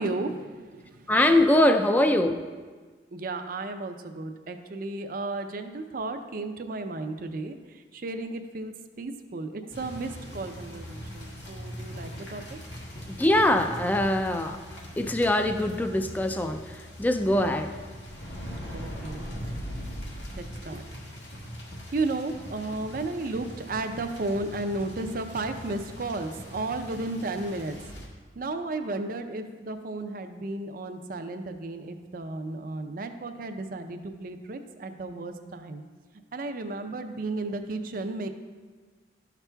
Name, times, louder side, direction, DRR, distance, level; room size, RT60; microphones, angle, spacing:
voice 1, 0.0-1.1 3.1-12.6 18.7-19.3 20.4-21.0 21.6-27.9 28.3-35.8 36.3-38.3, right 2 dB, 50° right, 7 dB, 0.5 m, -34 dB
voice 2, 1.1-2.4 13.2-14.6 15.0-17.7, left 1 dB, 10° left, 7 dB, 0.3 m, -23 dB
sound 1, 9.7-28.1, equal, 80° left, 1.3 m, -41 dB
12.0 x 5.9 x 2.2 m, 1.4 s
head